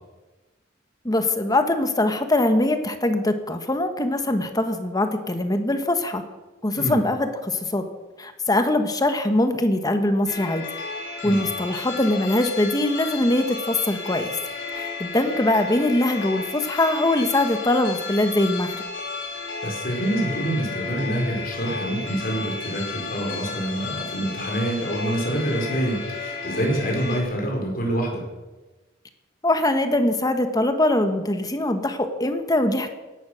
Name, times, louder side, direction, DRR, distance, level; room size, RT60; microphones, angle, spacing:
voice 1, 1.0-6.2 6.6-7.8 8.2-10.6 11.2-14.4 14.7-18.8 29.4-32.9, left 1 dB, 20° left, 7 dB, 1.2 m, -22 dB
sound 1, 10.3-27.2, left 4 dB, 65° left, 5.4 m, -33 dB
voice 2, 19.6-28.2, right 1 dB, 50° left, 1 dB, 4.7 m, -26 dB
16.5 x 11.5 x 6.4 m, 1.2 s
head